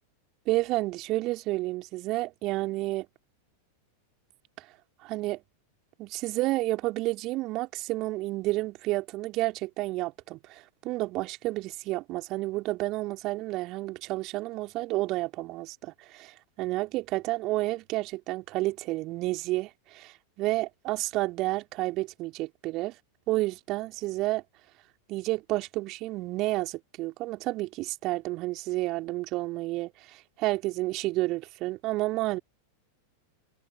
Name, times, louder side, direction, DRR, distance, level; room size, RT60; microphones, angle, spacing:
voice 1, 0.5-3.1 4.6-4.7 5.0-5.4 6.0-22.9 23.3-24.4 25.1-32.4, right 19 dB, 40° right, 3.8 m, -30 dB
figure-of-eight pair, 90°, 0 cm